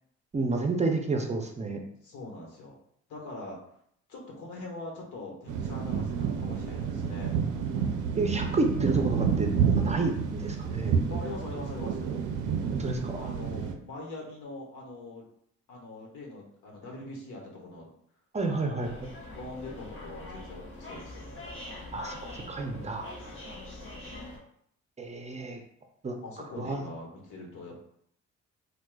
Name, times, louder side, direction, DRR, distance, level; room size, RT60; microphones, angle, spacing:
voice 1, 0.3-1.8 8.2-11.0 12.7-13.2 18.3-19.1 21.9-23.1 25.0-25.6 26.0-26.1 26.6-26.8, right 3 dB, 25° right, 3 dB, 0.5 m, -30 dB
voice 2, 2.0-2.8 3.1-3.6 4.1-7.4 11.1-12.1 13.2-15.2 15.7-17.9 18.4-19.0 19.3-21.4 24.0-24.3 26.2-27.8, left 2 dB, 80° left, -1 dB, 1.1 m, -43 dB
sound 1, 5.5-13.7, right 7 dB, 85° right, 0.5 m, -29 dB
sound 2, 18.8-24.4, left 2 dB, 40° left, 0.9 m, -43 dB
4.5 x 2.2 x 2.2 m, 0.68 s
cardioid pair, 90°, 30 cm